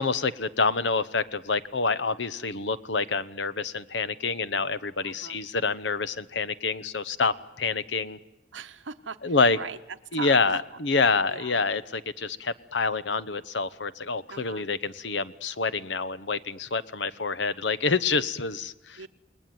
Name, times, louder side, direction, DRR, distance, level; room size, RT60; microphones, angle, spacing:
voice 1, 0.0-8.2 9.2-9.6 10.1-19.0, left 4 dB, 75° left, 15 dB, 1.0 m, -27 dB
voice 2, 5.0-5.4 8.5-9.8 10.1-10.6 11.3-11.6 14.3-14.7 19.0-19.1, right 5 dB, 90° right, 11 dB, 1.0 m, -40 dB
28.5 x 20.0 x 9.4 m, 0.95 s
head